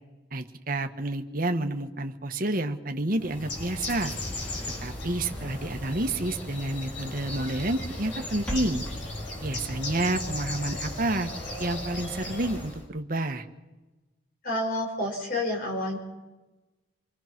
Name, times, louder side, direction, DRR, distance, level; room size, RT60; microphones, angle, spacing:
voice 1, 0.3-4.1 4.8-8.8 9.4-11.3 11.6-13.5, right 2 dB, 45° right, 6 dB, 1.4 m, -29 dB
Bird, 3.2-12.8, left 1 dB, 70° left, 7.1 m, -36 dB
sound 1, 4.1-10.2, equal, 5° left, 2.5 m, -43 dB
voice 2, 14.4-16.0, left 1 dB, 50° left, 1 dB, 5.4 m, -29 dB
26.0 x 23.0 x 6.1 m, 1.2 s
head